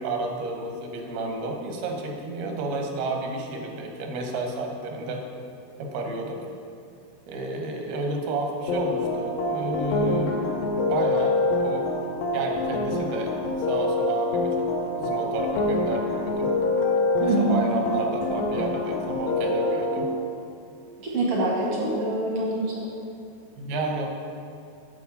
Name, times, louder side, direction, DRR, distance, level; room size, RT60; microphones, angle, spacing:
voice 1, 0.0-5.2 5.8-6.4 7.3-10.6 10.9-11.8 12.3-13.3 13.6-14.7 15.0-16.5 17.2-20.1 23.6-24.1, right 2 dB, 85° right, 2 dB, 2.9 m, -31 dB
sound 1, 8.7-20.0, left 2 dB, 70° left, 2.5 m, -26 dB
voice 2, 17.2-17.7 21.0-22.9, right 2 dB, 65° right, -3 dB, 1.4 m, -25 dB
9.3 x 4.6 x 6.9 m, 2.5 s
omnidirectional pair, 4.3 m